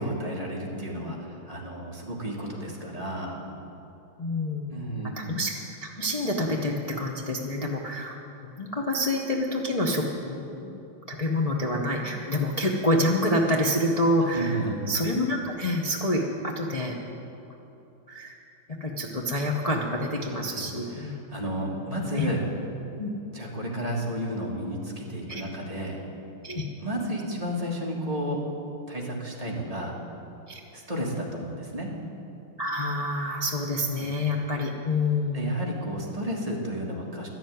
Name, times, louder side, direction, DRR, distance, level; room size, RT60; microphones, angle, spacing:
voice 1, 0.0-3.4 4.7-5.1 14.3-14.8 20.5-22.5 23.3-26.0 26.8-28.4 28.9-30.0 30.7-31.9 33.9-34.1 35.3-37.3, equal, 20° right, -3 dB, 1.7 m, -32 dB
voice 2, 4.2-4.9 5.2-5.5 5.8-10.8 11.1-14.6 14.9-16.9 18.1-18.3 18.8-21.3 22.1-22.3 23.0-23.1 25.3-25.4 26.4-26.7 30.5-30.6 32.6-35.6, left 1 dB, 55° left, -2 dB, 0.4 m, -27 dB
12.0 x 7.2 x 9.3 m, 2.8 s
omnidirectional pair, 2.3 m